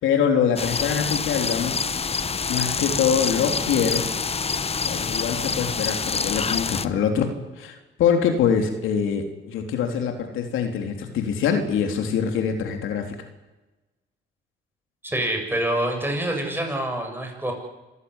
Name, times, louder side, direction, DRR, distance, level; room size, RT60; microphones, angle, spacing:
voice 1, 0.0-1.9 2.5-4.1 4.8-13.1, left 7 dB, 85° left, 5 dB, 3.5 m, -24 dB
sound 1, 0.6-6.9, left 5 dB, 30° left, 1.0 m, -26 dB
voice 2, 15.0-17.5, right 1 dB, 10° right, 3 dB, 7.6 m, -26 dB
26.5 x 15.0 x 9.8 m, 1.1 s
cardioid pair, 90°, 20 cm